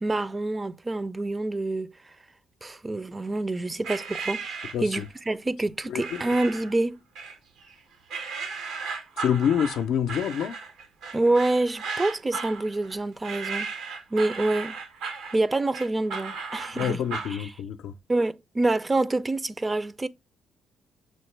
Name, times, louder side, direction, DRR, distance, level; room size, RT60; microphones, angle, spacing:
voice 1, 0.0-1.9 2.6-7.0 11.1-13.7 14.1-14.8 15.3-17.0 17.4-17.5 18.1-20.1, right 2 dB, 25° right, 0.4 m, -27 dB
sound 1, 3.8-5.2 6.0-6.7 7.2-7.7 8.1-17.4, right 5 dB, 90° right, 1.0 m, -35 dB
voice 2, 4.7-5.1 5.9-6.2 9.2-10.6 16.7-18.0, left 8 dB, 80° left, 0.4 m, -27 dB
6.1 x 2.1 x 3.1 m
cardioid pair, 90°, 0 cm